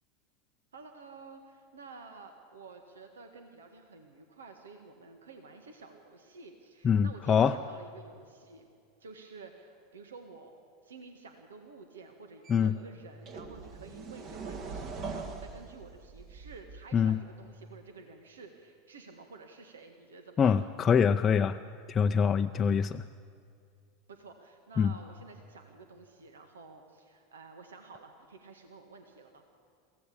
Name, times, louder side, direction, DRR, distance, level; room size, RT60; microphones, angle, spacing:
voice 1, 0.7-8.6 9.0-10.5 10.8-20.6 22.5-22.8 24.1-29.4, right 4 dB, 80° right, 6 dB, 1.7 m, -51 dB
voice 2, 6.8-7.6 12.5-12.7 16.9-17.2 20.4-21.6 21.9-23.0 24.8-24.9, left 7 dB, 30° left, 5 dB, 0.6 m, -24 dB
sound 1, 12.4-12.6 13.2-17.0, right 4 dB, 45° right, 2.1 m, -42 dB
23.0 x 16.0 x 8.7 m, 2.3 s
hypercardioid pair, 90°, 0 cm